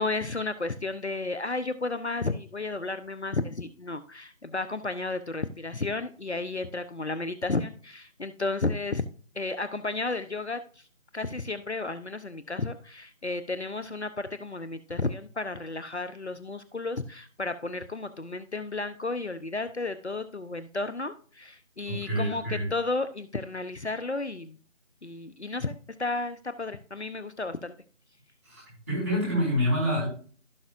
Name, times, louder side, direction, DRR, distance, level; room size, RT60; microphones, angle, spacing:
voice 1, 0.0-9.0 9.3-10.8 11.1-24.6 25.0-25.7 26.0-27.7, left 3 dB, 60° left, 12 dB, 0.9 m, -33 dB
voice 2, 21.9-22.7 28.4-30.1, equal, 10° right, -9 dB, 4.8 m, -27 dB
16.0 x 5.8 x 2.5 m, 0.42 s
figure-of-eight pair, 175°, 38 cm